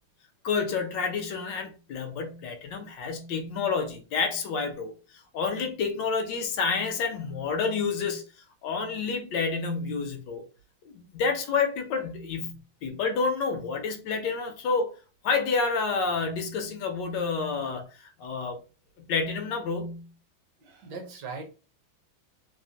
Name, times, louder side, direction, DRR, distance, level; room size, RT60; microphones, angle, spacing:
voice 1, 0.4-4.9 5.3-8.2 8.6-10.4 10.8-12.5 12.8-15.0 15.2-18.6 19.0-20.1, left 5 dB, 70° left, 1.2 m, -29 dB
voice 2, 20.6-21.4, right 4 dB, 65° right, 1.3 m, -39 dB
3.3 x 2.1 x 2.6 m
omnidirectional pair, 2.2 m